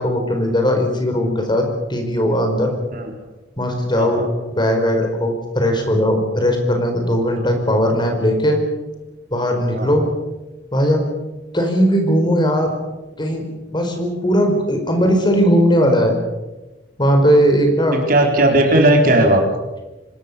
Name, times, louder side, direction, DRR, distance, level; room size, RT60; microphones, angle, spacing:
voice 1, 0.0-2.7 3.6-8.6 9.3-10.1 10.7-11.0 11.5-12.7 13.2-13.5 13.7-16.2 17.0-18.0, equal, 25° left, 4 dB, 4.8 m, -18 dB
voice 2, 4.0-4.3 7.4-7.5 9.7-9.9 17.9-19.4, right 1 dB, 50° right, 3 dB, 4.0 m, -16 dB
26.0 x 20.0 x 6.9 m, 1.1 s
head